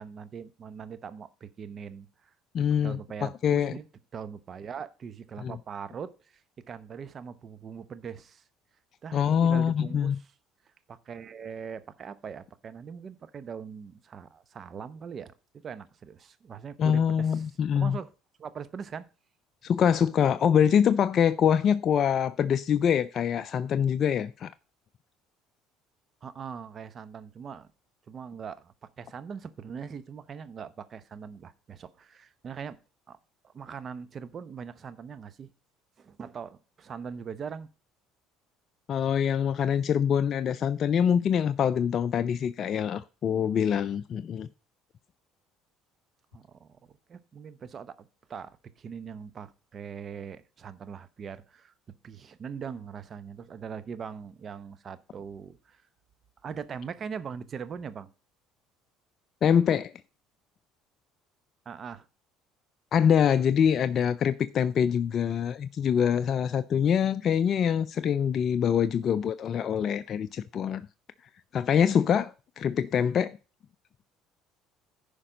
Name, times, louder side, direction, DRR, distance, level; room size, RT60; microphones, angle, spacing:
voice 1, 0.0-2.3 2.8-3.9 4.1-6.1 6.7-8.4 9.0-10.2 10.9-15.3 15.6-17.5 17.7-18.1 18.4-19.1 26.2-27.7 28.1-32.8 33.1-33.2 33.4-35.5 36.0-37.7 46.3-46.8 47.1-48.5 48.8-51.7 52.0-55.8 56.4-58.1 61.7-62.1, right 6 dB, 40° right, 0.9 m, -41 dB
voice 2, 2.5-3.7 5.4-5.5 9.1-10.2 16.8-18.0 19.6-24.5 38.9-44.5 59.4-59.9 62.9-70.8 71.5-73.3, left 8 dB, 50° left, 0.4 m, -24 dB
10.0 x 5.2 x 5.1 m
supercardioid pair, 80°, 0 cm